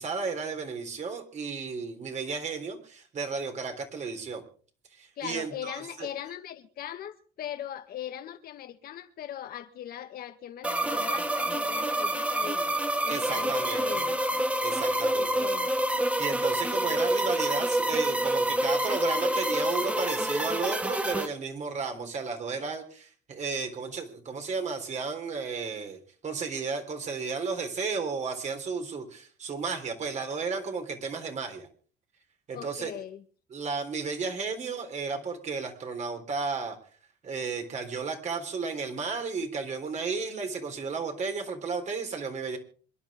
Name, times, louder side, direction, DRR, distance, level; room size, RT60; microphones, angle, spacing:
voice 1, 0.0-4.4 4.9-6.1 13.1-14.0 14.6-15.3 16.2-31.7 32.5-32.9 33.5-36.8 37.2-42.6, right 4 dB, 45° right, 3.6 m, -33 dB
voice 2, 5.2-12.7 13.0-14.2 15.1-15.7 32.5-33.2, left 11 dB, 60° left, 1.6 m, -40 dB
sound 1, 10.6-21.3, right 1 dB, 5° right, 1.5 m, -27 dB
27.0 x 11.0 x 3.6 m
cardioid pair, 110°, 17 cm